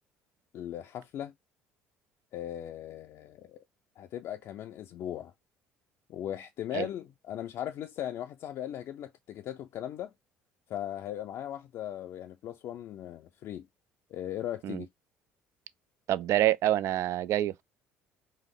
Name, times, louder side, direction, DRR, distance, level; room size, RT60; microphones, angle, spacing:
voice 1, 0.5-1.3 2.3-3.6 4.0-5.3 6.1-10.1 10.7-13.6 14.1-14.9, left 11 dB, 60° left, 0.5 m, -38 dB
voice 2, 16.1-17.6, right 13 dB, 60° right, 0.4 m, -27 dB
4.2 x 2.5 x 3.7 m
hypercardioid pair, 65°, 5 cm